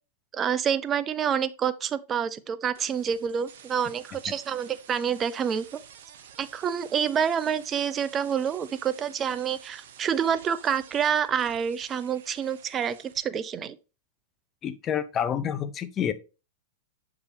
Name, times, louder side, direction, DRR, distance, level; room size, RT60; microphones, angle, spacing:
voice 1, 0.3-5.8 6.4-13.8, right 8 dB, 30° right, 0.5 m, -28 dB
sound 1, 2.7-13.2, right 8 dB, 65° right, 0.7 m, -50 dB
voice 2, 14.6-16.1, left 8 dB, 30° left, 0.7 m, -28 dB
6.7 x 4.8 x 3.3 m
hypercardioid pair, 100°, 0 cm